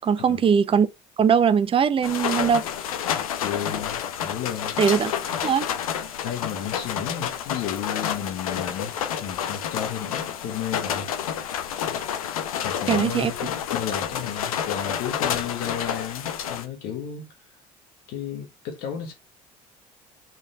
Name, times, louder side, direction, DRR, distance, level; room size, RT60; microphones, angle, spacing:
voice 1, 0.0-0.9 1.2-2.6 4.8-5.1 5.4-5.7 12.9-13.3, right 7 dB, 30° right, 0.7 m, -20 dB
sound 1, 2.0-16.7, left 9 dB, 75° left, 1.0 m, -29 dB
voice 2, 3.4-4.7 6.2-11.1 12.6-17.6 18.1-19.1, left 9 dB, 55° left, 1.5 m, -33 dB
5.3 x 4.7 x 6.2 m
figure-of-eight pair, 55°, 18 cm